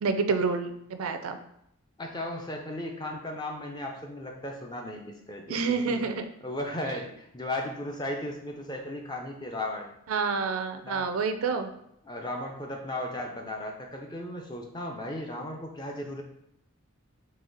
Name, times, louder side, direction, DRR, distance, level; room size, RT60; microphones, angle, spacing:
voice 1, 0.0-1.4 5.5-6.2 10.1-11.7, right 4 dB, 80° right, 8 dB, 0.4 m, -28 dB
voice 2, 2.0-6.0 6.4-9.9 10.8-11.1 12.0-16.2, left 1 dB, 20° left, 1 dB, 0.5 m, -36 dB
4.0 x 2.7 x 3.9 m, 0.75 s
head